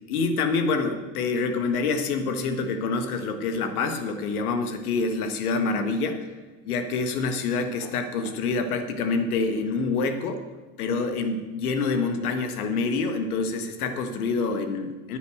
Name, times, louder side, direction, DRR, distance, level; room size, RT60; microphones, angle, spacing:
voice 1, 0.1-6.3 6.6-10.4 10.8-15.2, left 4 dB, 80° left, 8 dB, 1.6 m, -26 dB
9.7 x 9.4 x 6.5 m, 1.4 s
hypercardioid pair, 90°, 44 cm